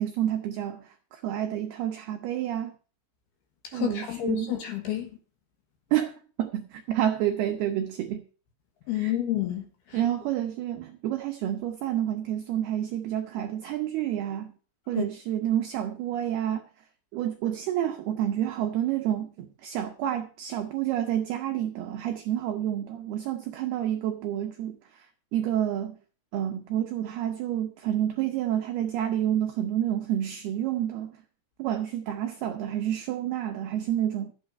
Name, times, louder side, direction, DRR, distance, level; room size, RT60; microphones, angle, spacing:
voice 1, 0.0-2.7 3.7-4.6 5.9-8.2 8.9-9.2 9.9-14.5 14.9-16.6 17.1-24.8 25.3-26.0 26.3-31.1 31.6-34.3, right 11 dB, 90° right, 2.2 m, -29 dB
voice 2, 3.7-5.1 8.9-9.6 15.0-15.1, left 11 dB, 65° left, 2.9 m, -29 dB
13.0 x 8.7 x 5.3 m
omnidirectional pair, 5.8 m